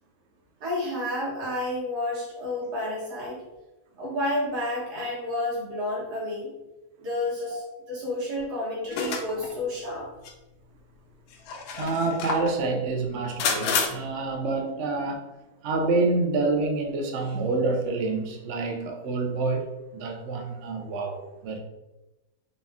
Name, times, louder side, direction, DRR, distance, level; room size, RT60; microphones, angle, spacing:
voice 1, 0.6-3.4 4.0-6.5 7.0-7.6 7.9-10.1, left 1 dB, 85° right, -6 dB, 2.1 m, -30 dB
sound 1, 8.9-9.5 10.3-10.4 11.3-12.5 13.4-13.9, left 5 dB, 80° left, 1.1 m, -28 dB
voice 2, 11.8-15.2 15.6-19.7 19.9-21.6, right 3 dB, 65° right, 3 dB, 0.7 m, -27 dB
4.2 x 2.3 x 3.5 m, 1.0 s
omnidirectional pair, 1.7 m